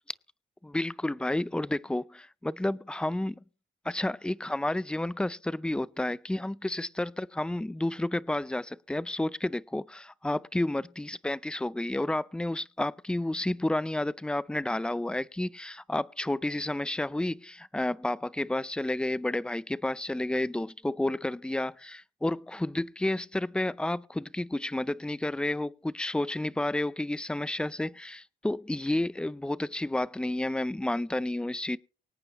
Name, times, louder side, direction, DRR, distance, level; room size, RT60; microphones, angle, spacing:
voice 1, 0.6-3.4 3.8-31.8, left 1 dB, 5° left, 0.5 m, -31 dB
24.5 x 8.9 x 3.0 m
cardioid pair, 90°, 20 cm